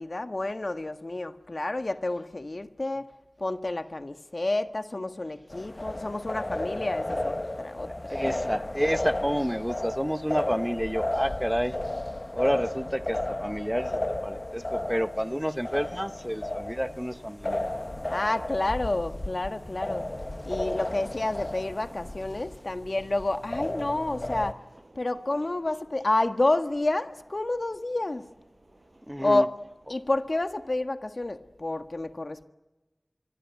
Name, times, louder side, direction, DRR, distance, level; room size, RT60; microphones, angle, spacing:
voice 1, 0.0-3.1 3.4-8.3 18.1-20.1 20.4-24.6 24.9-28.2 29.2-29.5 29.9-32.4, left 2 dB, 65° left, 8 dB, 1.6 m, -29 dB
sound 1, 5.5-24.5, left 1 dB, 40° left, 1.1 m, -33 dB
voice 2, 8.1-11.8 12.3-17.6 29.1-29.5, equal, ahead, 11 dB, 1.0 m, -29 dB
sound 2, 14.8-30.8, right 2 dB, 75° right, 5.5 m, -54 dB
25.5 x 23.5 x 9.5 m, 1.0 s
wide cardioid pair, 45°, 0 cm